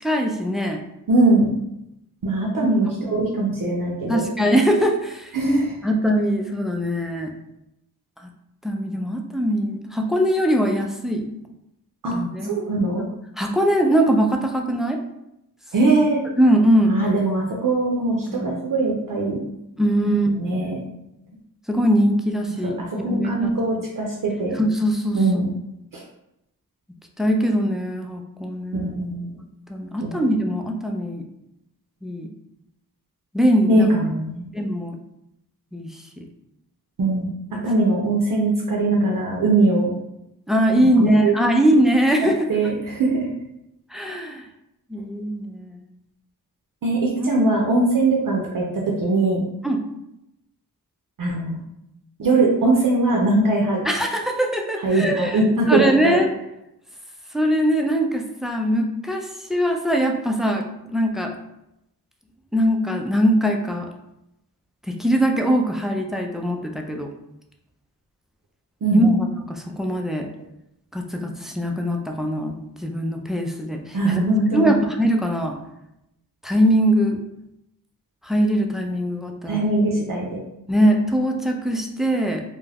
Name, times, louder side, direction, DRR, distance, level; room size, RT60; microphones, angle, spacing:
voice 1, 0.0-0.8 2.6-2.7 4.1-5.3 5.8-7.3 8.6-11.3 12.1-12.5 13.4-15.0 15.9-16.0 16.4-16.9 18.3-18.6 19.8-20.7 21.7-22.8 23.1-23.5 24.6-25.2 27.2-29.0 29.7-31.2 32.0-32.3 33.3-33.9 34.5-35.0 35.7-35.9 37.5-37.6 40.5-42.4 43.9-44.4 44.9-45.8 47.2-47.5 49.6-49.8 53.8-56.3 57.3-61.3 62.5-63.9 64.9-67.1 68.9-69.1 69.5-70.3 70.9-74.2 74.5-75.6 76.4-77.2 78.2-79.6 80.7-82.4, equal, ahead, 2 dB, 0.3 m, -21 dB
voice 2, 1.1-1.6 2.2-4.2 5.3-5.7 12.0-13.0 15.7-16.2 16.9-19.4 20.1-20.8 22.6-24.6 25.1-25.5 25.9-26.0 28.7-29.3 30.0-30.2 33.7-34.5 37.0-39.9 41.0-41.3 42.5-43.3 46.8-49.4 51.2-51.6 52.2-53.8 54.8-56.2 68.8-69.2 73.9-74.7 79.5-80.4, right 2 dB, 60° right, -1 dB, 0.6 m, -21 dB
2.3 x 2.1 x 3.3 m, 0.84 s
cardioid pair, 55°, 38 cm